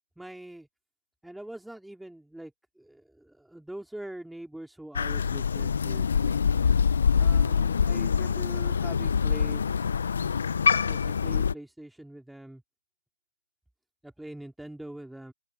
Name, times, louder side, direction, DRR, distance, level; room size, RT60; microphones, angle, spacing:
voice 1, 0.2-0.7 1.2-6.4 7.1-9.7 10.8-12.6 14.0-15.3, right 1 dB, ahead, 4.5 m, -43 dB
Crow, 5.0-11.5, left 6 dB, 50° left, 0.9 m, -25 dB
figure-of-eight pair, 155°, 0 cm